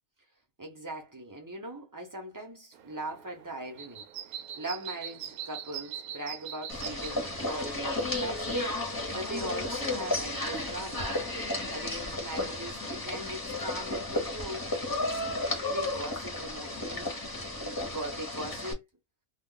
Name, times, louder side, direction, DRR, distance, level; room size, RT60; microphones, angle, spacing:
voice 1, 0.6-11.2 11.7-14.7 15.0-17.1 17.6-18.8, right 1 dB, 20° right, 0.6 m, -40 dB
sound 1, 2.7-7.8, right 10 dB, 75° right, 1.0 m, -42 dB
sound 2, 6.7-18.7, left 2 dB, 15° left, 0.9 m, -33 dB
2.4 x 2.3 x 3.7 m
omnidirectional pair, 1.5 m